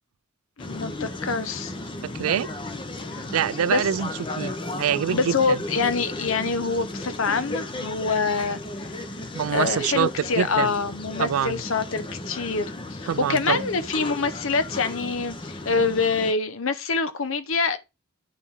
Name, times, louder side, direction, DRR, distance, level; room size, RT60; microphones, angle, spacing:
voice 1, 0.6-1.8 3.1-3.2 3.7-3.8 5.1-8.9 9.5-17.8, left 4 dB, 70° left, 0.8 m, -25 dB
sound 1, 0.6-16.3, left 2 dB, 25° left, 0.7 m, -35 dB
voice 2, 2.1-2.5 3.3-4.1 4.4-5.6 9.3-10.1 10.4-10.7 11.2-11.6 13.1-13.6, right 9 dB, 90° right, 0.4 m, -25 dB
8.9 x 4.1 x 3.7 m
head